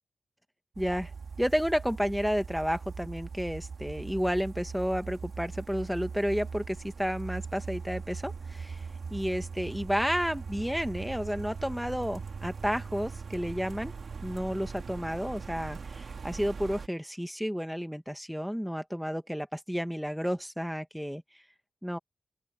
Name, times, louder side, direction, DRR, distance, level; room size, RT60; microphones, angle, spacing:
sound 1, 0.7-16.9, right 5 dB, 70° right, 4.3 m, -40 dB
voice 1, 0.8-1.1 1.4-13.9 14.2-21.2 21.8-22.0, equal, ahead, 1.6 m, -31 dB
open air
wide cardioid pair, 95°, 0 cm